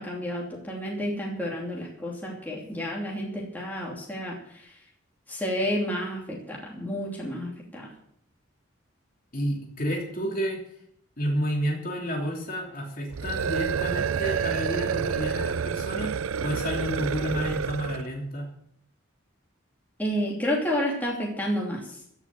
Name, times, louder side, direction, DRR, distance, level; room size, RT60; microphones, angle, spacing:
voice 1, 0.0-4.7 5.3-7.9 20.0-21.9, equal, 10° left, -3 dB, 2.9 m, -30 dB
voice 2, 9.3-10.6 11.2-16.1 16.4-18.5, equal, 45° left, 0 dB, 3.1 m, -30 dB
sound 1, 13.1-18.1, right 7 dB, 90° right, 0.5 m, -29 dB
15.5 x 6.1 x 9.0 m, 0.69 s
head